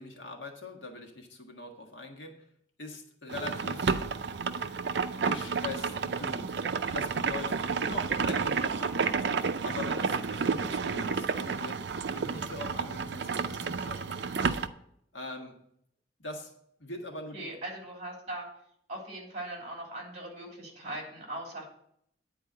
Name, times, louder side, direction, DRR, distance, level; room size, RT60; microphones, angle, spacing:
voice 1, 0.0-2.4 2.8-4.0 4.7-4.8 5.2-6.6 6.9-9.3 9.6-11.8 12.1-14.6 15.1-15.6 16.2-16.5 16.8-17.6, left 2 dB, 75° left, 1 dB, 1.7 m, -42 dB
sound 1, 3.3-14.7, right 5 dB, 65° right, 0.5 m, -31 dB
voice 2, 17.3-18.5 18.9-21.6, right 1 dB, 35° right, 0 dB, 3.1 m, -40 dB
9.8 x 4.5 x 7.7 m, 0.71 s
head